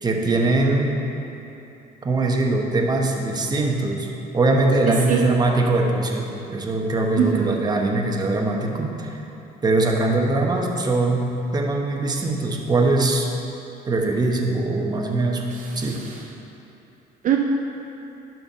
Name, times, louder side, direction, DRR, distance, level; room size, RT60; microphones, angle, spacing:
voice 1, 0.0-1.0 2.0-4.1 4.3-9.2 9.6-13.3 13.9-16.1, right 2 dB, 25° right, 1 dB, 1.1 m, -22 dB
voice 2, 7.2-7.6 15.5-16.2 17.2-17.4, right 9 dB, 50° right, 0 dB, 0.6 m, -23 dB
11.5 x 4.5 x 5.5 m, 2.9 s
cardioid pair, 110°, 17 cm